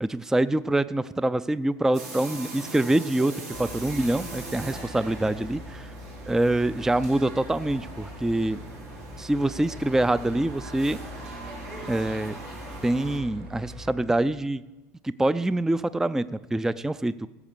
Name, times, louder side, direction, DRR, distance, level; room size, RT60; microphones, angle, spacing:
voice 1, 0.0-3.3 3.6-5.9 6.3-8.6 9.2-11.0 11.9-12.4 12.8-14.6 15.0-17.3, right 1 dB, 5° right, 16 dB, 0.3 m, -25 dB
sound 1, 1.9-13.2, right 2 dB, 80° right, 4.3 m, -41 dB
sound 2, 3.5-14.0, left 1 dB, 55° right, 4.2 m, -43 dB
14.5 x 7.2 x 6.9 m, 1.0 s
hypercardioid pair, 75°, 9 cm